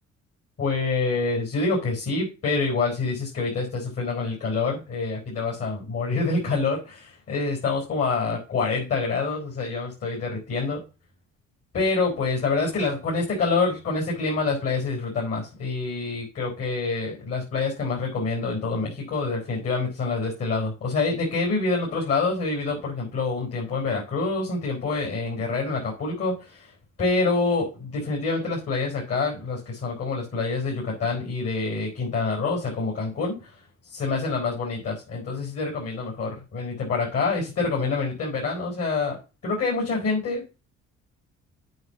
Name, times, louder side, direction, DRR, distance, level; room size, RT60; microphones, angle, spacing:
voice 1, 0.6-10.8 11.7-26.7 27.0-33.5 33.9-39.2 39.4-40.6, left 3 dB, 55° left, -1 dB, 4.6 m, -26 dB
8.0 x 6.1 x 6.9 m, 0.31 s
cardioid pair, 90°, 30 cm